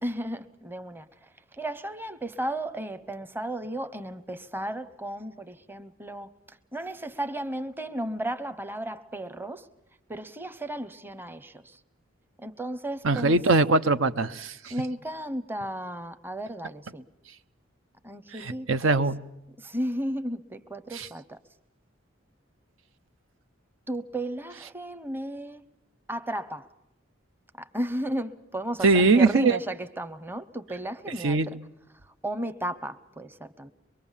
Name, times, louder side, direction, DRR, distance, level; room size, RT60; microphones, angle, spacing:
voice 1, 0.0-9.7 10.1-11.8 12.4-13.4 14.7-17.1 18.0-19.0 19.6-21.4 23.9-25.6 26.1-26.7 27.6-31.6 32.0-33.7, right 1 dB, 10° right, 0.8 m, -34 dB
voice 2, 13.0-14.7 18.7-19.2 20.9-21.1 28.8-29.6 31.2-31.5, right 3 dB, 80° right, 0.8 m, -21 dB
23.5 x 23.5 x 7.3 m
head